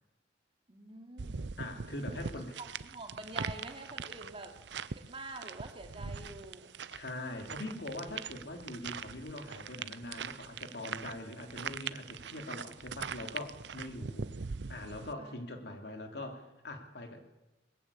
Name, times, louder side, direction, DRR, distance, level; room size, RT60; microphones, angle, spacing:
voice 1, 0.7-1.5 2.1-4.6 4.9-6.7 15.2-15.4, right 2 dB, 30° right, 4 dB, 2.8 m, -47 dB
sound 1, 1.2-15.1, right 6 dB, 75° right, 0.7 m, -42 dB
voice 2, 1.6-2.6 6.0-6.2 6.9-14.3 14.7-17.2, left 1 dB, 65° left, 4 dB, 3.0 m, -42 dB
21.0 x 15.0 x 8.6 m, 0.98 s
head